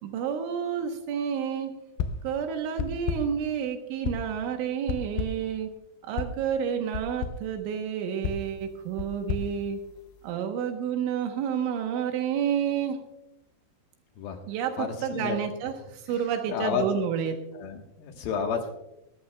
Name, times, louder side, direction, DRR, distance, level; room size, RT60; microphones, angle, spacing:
voice 1, 0.0-1.7 2.2-5.7 6.1-9.8 10.2-13.0 14.5-17.4, right 8 dB, 80° right, 5 dB, 3.4 m, -30 dB
sound 1, 2.0-2.4 2.8-3.4 4.0-4.4 4.9-5.5 6.2-6.4 6.9-7.5 8.2-10.3, left 6 dB, 90° left, 2.2 m, -33 dB
voice 2, 14.8-15.4 16.5-16.9 17.5-18.7, left 7 dB, 70° left, 4 dB, 2.5 m, -31 dB
21.5 x 14.0 x 2.2 m, 0.89 s
omnidirectional pair, 5.5 m